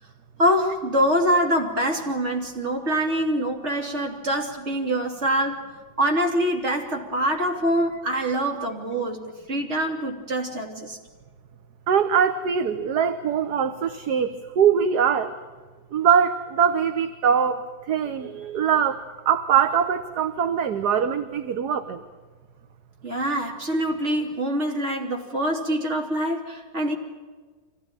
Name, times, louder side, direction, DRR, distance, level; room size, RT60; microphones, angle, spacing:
voice 1, 0.4-5.6 6.0-11.0 23.0-26.9, equal, 35° right, 1 dB, 3.4 m, -25 dB
voice 2, 11.9-15.3 15.9-22.0, right 7 dB, 60° right, 9 dB, 1.5 m, -22 dB
25.0 x 16.5 x 9.0 m, 1.5 s
omnidirectional pair, 2.2 m